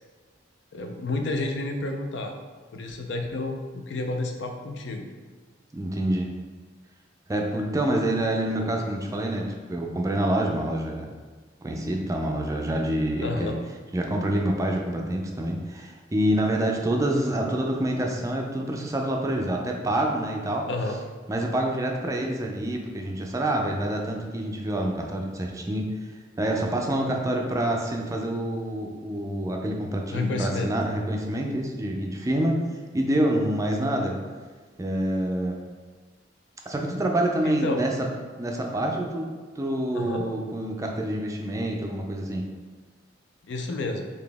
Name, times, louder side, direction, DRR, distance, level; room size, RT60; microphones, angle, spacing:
voice 1, 0.7-2.3 2.7-5.1 13.2-13.6 20.7-21.0 30.1-30.7 37.4-37.8 39.9-40.3 43.4-44.1, left 2 dB, 75° left, 4 dB, 0.5 m, -30 dB
voice 2, 5.7-6.3 7.3-11.1 11.6-13.5 13.9-20.6 21.3-25.9 26.4-32.6 32.9-34.1 34.8-35.6 36.7-37.9 38.4-39.3 39.6-42.4, right 1 dB, 20° right, 1 dB, 0.4 m, -27 dB
4.0 x 2.8 x 3.4 m, 1.4 s
head